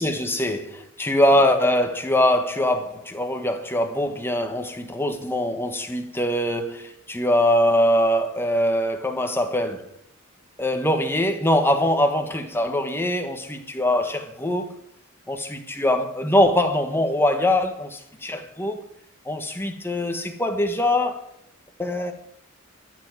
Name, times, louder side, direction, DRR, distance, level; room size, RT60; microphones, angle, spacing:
voice 1, 0.0-9.8 10.6-14.7 15.3-18.8 19.3-21.2 21.8-22.1, left 1 dB, 10° left, 1.5 m, -22 dB
14.0 x 7.3 x 9.8 m
head